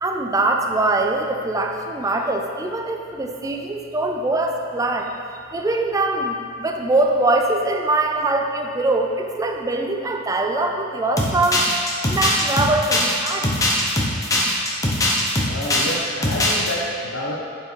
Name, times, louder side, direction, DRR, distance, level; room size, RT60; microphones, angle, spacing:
voice 1, 0.0-11.7 12.1-13.5, right 2 dB, 15° right, 3 dB, 0.4 m, -22 dB
sound 1, 11.2-15.9 16.2-16.7, left 1 dB, 15° left, 0.7 m, -20 dB
voice 2, 15.4-17.3, left 1 dB, 85° left, -4 dB, 0.7 m, -29 dB
8.1 x 4.4 x 3.1 m, 2.3 s
head